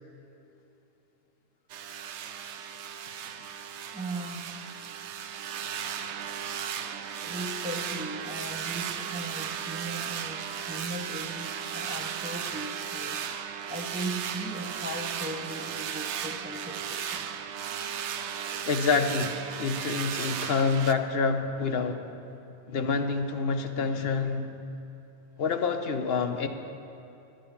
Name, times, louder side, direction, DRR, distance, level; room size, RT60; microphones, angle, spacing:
sound 1, 1.7-20.9, right 8 dB, 85° right, 0.9 m, -35 dB
voice 1, 3.9-4.5 7.2-13.2 13.7-17.2, right 1 dB, 10° right, 3 dB, 0.5 m, -38 dB
voice 2, 18.6-22.0 22.7-24.5 25.4-26.5, left 4 dB, 65° left, 7 dB, 0.9 m, -27 dB
12.0 x 10.0 x 5.7 m, 2.9 s
omnidirectional pair, 1.1 m